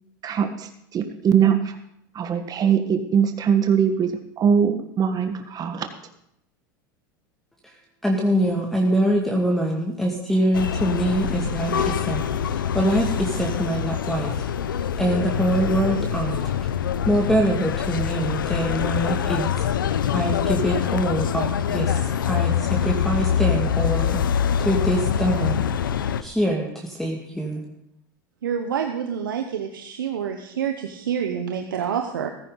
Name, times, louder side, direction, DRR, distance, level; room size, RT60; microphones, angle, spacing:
voice 1, 0.9-1.6 2.1-4.1 4.4-5.9, right 7 dB, 35° right, 7 dB, 1.5 m, -21 dB
voice 2, 8.0-12.2 12.5-14.4 15.0-16.5 17.1-19.6 20.1-24.2 24.6-25.6 26.2-27.6, right 1 dB, ahead, -1 dB, 2.2 m, -24 dB
sound 1, 10.5-26.2, left 8 dB, 85° left, 0.8 m, -24 dB
voice 3, 28.4-32.3, right 8 dB, 85° right, 5 dB, 1.0 m, -27 dB
15.0 x 14.5 x 4.0 m, 0.75 s
hypercardioid pair, 85°, 11 cm